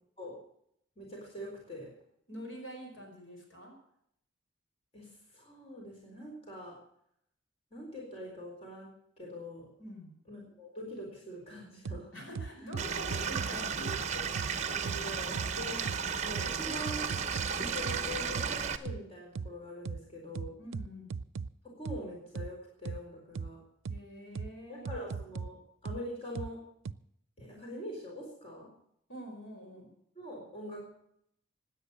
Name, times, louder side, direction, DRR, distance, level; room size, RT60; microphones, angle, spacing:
voice 1, 1.0-1.9 4.9-6.8 7.7-8.9 9.2-9.7 10.3-12.1 14.5-15.9 16.2-17.1 17.5-20.5 21.6-23.6 24.7-26.6 27.4-28.7 30.1-30.9, left 1 dB, 30° left, -2 dB, 4.3 m, -43 dB
voice 2, 2.3-3.7 9.8-10.1 12.1-14.2 20.6-21.1 23.9-25.1 29.1-29.9, right 1 dB, 75° left, 2 dB, 5.1 m, -45 dB
sound 1, 11.9-12.0 12.4-13.5 13.9-14.0 14.4-14.5 14.9-15.0 15.4-15.5 15.9-16.0 16.4-16.5 16.9-17.5 17.9-18.0 18.4-18.5 18.9-19.0 19.4-19.5 19.9-20.0 20.4-21.5 21.9-22.0 22.4-22.5 22.9-23.0 23.4-23.5 23.9-24.0 24.4-24.5 24.9-25.5 25.9-26.0 26.4-26.5 26.9-27.0, right 5 dB, 85° right, 0.5 m, -37 dB
Stream / Liquid, 12.8-18.8, right 6 dB, 35° right, 0.8 m, -34 dB
16.5 x 10.0 x 6.9 m, 0.72 s
head